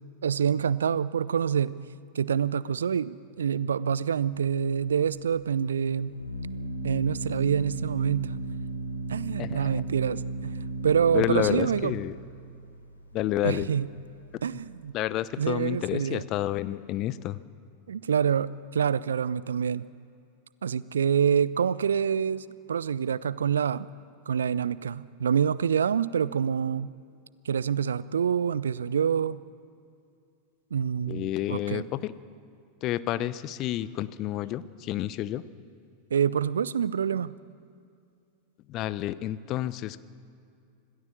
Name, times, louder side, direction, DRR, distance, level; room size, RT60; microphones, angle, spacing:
voice 1, 0.2-1.8 2.1-6.1 6.8-8.3 9.1-10.6 10.8-12.0 13.4-13.9 14.4-14.9 15.4-16.2 17.9-19.9 20.6-23.9 24.3-26.9 27.5-29.4 30.7-31.8 36.1-37.3, right 7 dB, 70° right, 19 dB, 0.5 m, -26 dB
Organ, 4.3-14.8, right 2 dB, 80° left, 2.6 m, -36 dB
voice 2, 9.4-9.8 11.1-12.2 13.1-13.7 14.5-14.6 14.9-17.4 31.1-32.1 32.8-35.4 38.7-40.0, left 13 dB, 35° left, 16 dB, 0.8 m, -30 dB
26.5 x 18.0 x 7.0 m, 2.4 s
figure-of-eight pair, 90°, 0 cm